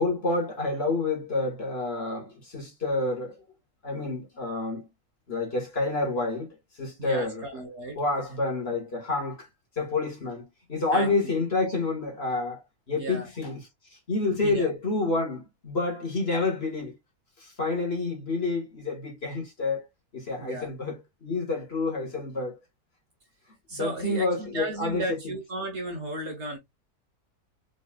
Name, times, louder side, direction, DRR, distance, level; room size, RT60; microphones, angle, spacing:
voice 1, 0.0-3.4 3.8-4.8 5.3-6.5 6.8-7.4 8.0-9.5 9.8-13.6 14.1-16.9 17.4-19.9 20.1-20.9 21.2-22.5 23.7-25.0, left 3 dB, 40° left, 1.8 m, -28 dB
voice 2, 7.0-8.0 10.9-11.1 12.9-13.3 14.4-14.7 20.4-20.7 23.7-26.6, right 2 dB, 50° right, 1.2 m, -34 dB
4.1 x 3.8 x 2.3 m
omnidirectional pair, 1.6 m